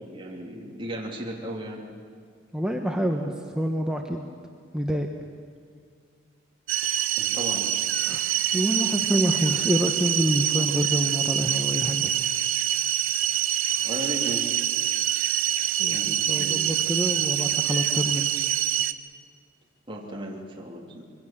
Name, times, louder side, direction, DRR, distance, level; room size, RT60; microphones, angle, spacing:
voice 1, 0.0-2.0 3.0-3.5 7.2-7.8 8.1-8.2 13.8-14.5 15.9-16.6 19.9-21.0, right 1 dB, 25° right, -2 dB, 3.0 m, -36 dB
voice 2, 2.5-4.3 4.7-5.1 8.0-8.3 8.5-12.1 15.8-16.0 16.3-18.3, equal, 5° right, 2 dB, 1.2 m, -27 dB
sound 1, 6.7-18.9, right 12 dB, 90° right, 0.9 m, -25 dB
25.5 x 22.5 x 7.5 m, 2.1 s
head